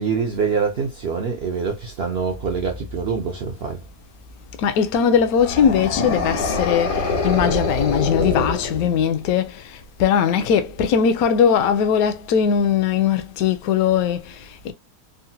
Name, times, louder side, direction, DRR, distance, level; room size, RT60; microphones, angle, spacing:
voice 1, 0.0-3.8, right 5 dB, 70° right, 0.5 m, -25 dB
voice 2, 4.6-14.7, left 7 dB, 70° left, 1.0 m, -20 dB
sound 1, 5.4-9.2, left 3 dB, 90° left, 1.7 m, -24 dB
3.8 x 2.1 x 2.7 m
omnidirectional pair, 1.7 m